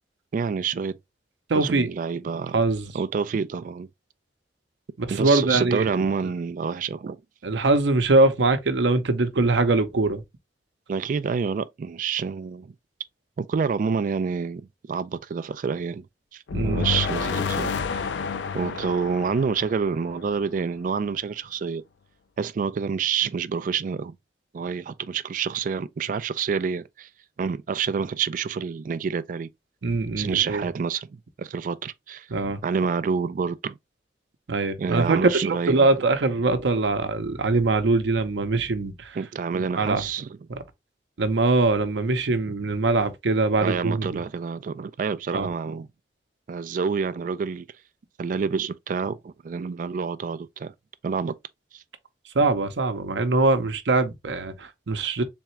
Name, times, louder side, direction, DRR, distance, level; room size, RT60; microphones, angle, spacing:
voice 1, 0.3-1.0 1.5-2.6 2.9-3.9 5.1-7.2 10.9-12.7 13.4-16.1 16.3-18.1 18.5-21.8 22.4-24.2 24.5-27.1 27.4-29.5 30.2-32.3 32.6-33.8 34.8-35.9 39.2-40.4 43.6-45.9 46.5-47.7 48.2-50.7 51.0-51.4 51.7-51.8, right 5 dB, 50° right, 0.3 m, -28 dB
voice 2, 1.5-1.9 2.5-2.9 5.0-6.0 7.4-10.2 16.5-16.9 29.8-30.6 32.3-32.6 34.5-35.2 35.7-39.2 39.5-40.0 40.5-40.6 41.2-44.2 45.3-45.5 52.3-55.2, right 3 dB, 85° right, 0.7 m, -22 dB
sound 1, 16.5-20.6, left 5 dB, 90° left, 0.4 m, -29 dB
3.5 x 3.2 x 2.9 m
head